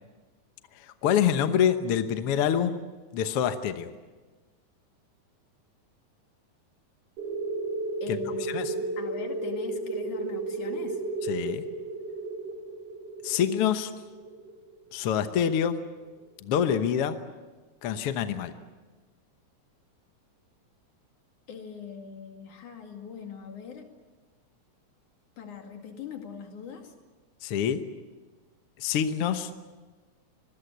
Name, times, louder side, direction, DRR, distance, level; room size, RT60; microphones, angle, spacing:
voice 1, 0.8-2.8 3.1-3.9 8.1-8.7 11.3-11.6 13.2-13.9 14.9-15.8 16.4-17.2 17.8-18.5 27.4-27.8 28.8-29.5, left 8 dB, 60° left, 8 dB, 1.7 m, -26 dB
sound 1, 7.2-15.5, right 3 dB, 50° right, 5.2 m, -34 dB
voice 2, 8.0-11.0 21.5-23.9 25.4-26.9, left 6 dB, 75° left, 4 dB, 3.8 m, -42 dB
26.0 x 21.5 x 8.1 m, 1.3 s
omnidirectional pair, 3.5 m